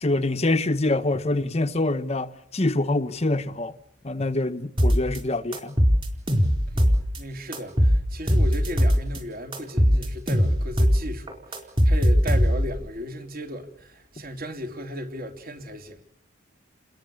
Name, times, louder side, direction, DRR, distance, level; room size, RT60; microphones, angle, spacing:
voice 1, 0.0-3.7 4.0-5.8, left 2 dB, 30° left, 0.9 m, -25 dB
sound 1, 4.8-5.2 5.5-7.2 7.5-9.2 9.5-11.0 11.3-12.8, equal, 25° right, 4.4 m, -20 dB
voice 2, 6.7-16.0, equal, 45° right, 3.3 m, -36 dB
29.0 x 21.5 x 7.1 m
head